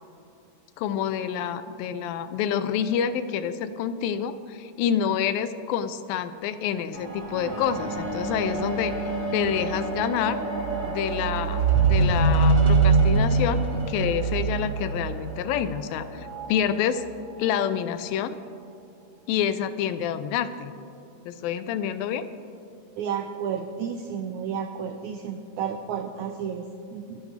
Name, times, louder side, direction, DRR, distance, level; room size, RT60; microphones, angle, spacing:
voice 1, 0.8-10.4 10.9-17.1 17.4-18.4 19.3-20.7 21.3-22.3, left 8 dB, 85° left, 12 dB, 2.4 m, -28 dB
sound 1, 6.9-16.5 17.3-17.4, right 4 dB, 40° right, 1.3 m, -24 dB
voice 2, 23.0-27.2, right 7 dB, 85° right, 6 dB, 1.7 m, -32 dB
30.0 x 10.5 x 3.3 m, 2.5 s
omnidirectional pair, 4.0 m